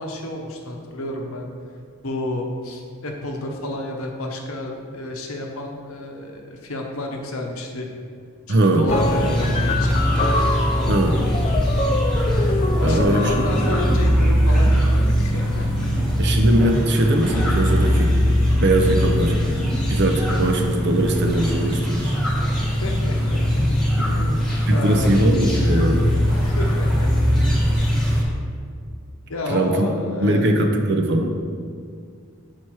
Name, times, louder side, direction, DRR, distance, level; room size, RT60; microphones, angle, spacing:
voice 1, 0.0-1.5 2.0-7.9 8.5-10.0 10.7-11.3 12.8-15.9 22.6-23.4 24.0-25.1 26.3-27.1 27.4-27.8 29.3-30.5, left 1 dB, 70° left, 2 dB, 0.8 m, -31 dB
voice 2, 8.5-8.9 10.9-11.2 12.8-13.3 16.2-18.2 18.6-19.4 19.9-22.2 24.7-26.2 29.5-29.9 30.2-31.3, right 1 dB, 50° right, 3 dB, 0.6 m, -20 dB
sound 1, 8.9-14.1, left 2 dB, 30° left, 0.4 m, -26 dB
sound 2, 8.9-28.2, equal, ahead, 1.2 m, -21 dB
6.0 x 4.5 x 4.6 m, 2.1 s
head